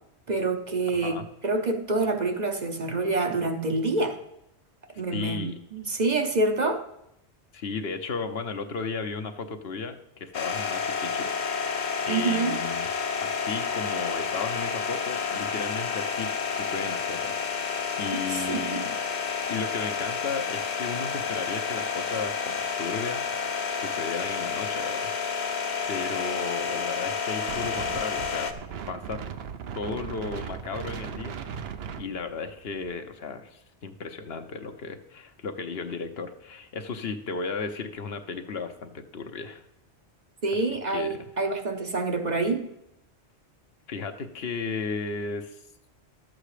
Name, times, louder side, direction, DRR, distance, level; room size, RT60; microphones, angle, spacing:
voice 1, 0.3-4.2 5.0-6.8 12.1-12.6 18.3-18.8 40.4-42.7, right 3 dB, 45° right, 5 dB, 0.9 m, -27 dB
voice 2, 0.9-1.3 5.1-5.6 7.5-12.9 13.1-18.9 19.5-23.2 23.8-25.5 25.9-28.5 28.9-29.2 29.7-31.4 32.0-39.6 40.7-41.3 43.9-45.6, left 4 dB, 65° left, 7 dB, 1.1 m, -35 dB
sound 1, 10.3-28.5, left 6 dB, 45° left, 0.9 m, -30 dB
Wind, 27.5-33.0, right 7 dB, 70° right, 0.9 m, -38 dB
12.0 x 7.6 x 5.0 m, 0.80 s
omnidirectional pair, 1.1 m